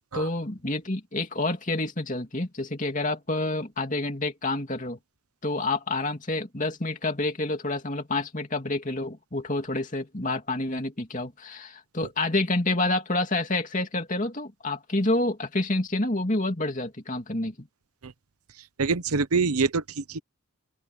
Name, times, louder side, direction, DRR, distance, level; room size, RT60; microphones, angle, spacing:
voice 1, 0.1-5.0 5.4-17.7, left 2 dB, 35° left, 2.7 m, -28 dB
voice 2, 18.8-20.2, right 4 dB, 85° right, 0.9 m, -25 dB
open air
head